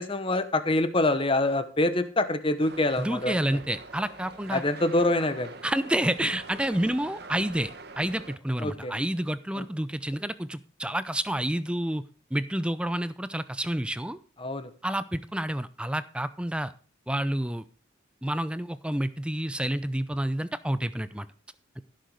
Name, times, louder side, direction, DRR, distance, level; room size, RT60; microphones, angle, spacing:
voice 1, 0.0-3.4 4.5-5.5 8.6-8.9 9.6-9.7 14.4-14.7, left 2 dB, 25° left, 11 dB, 1.0 m, -25 dB
sound 1, 2.6-8.4, right 3 dB, 55° right, 1.2 m, -45 dB
voice 2, 3.0-4.6 5.6-12.0 12.3-14.2 14.8-16.7 17.1-17.6 18.2-21.3, right 1 dB, 5° right, 14 dB, 0.5 m, -29 dB
15.5 x 6.6 x 4.8 m, 0.38 s
head